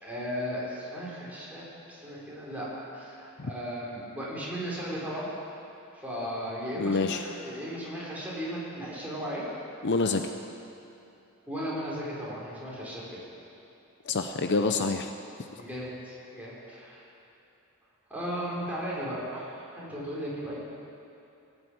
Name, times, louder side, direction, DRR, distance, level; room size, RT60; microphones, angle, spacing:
voice 1, 0.0-5.3 5.9-9.4 11.5-13.2 15.5-17.0 18.1-20.6, equal, 5° right, -7 dB, 4.2 m, -36 dB
voice 2, 6.8-7.2 9.8-10.2 14.1-15.1, left 3 dB, 55° left, 6 dB, 0.6 m, -27 dB
18.0 x 8.0 x 8.6 m, 2.8 s
head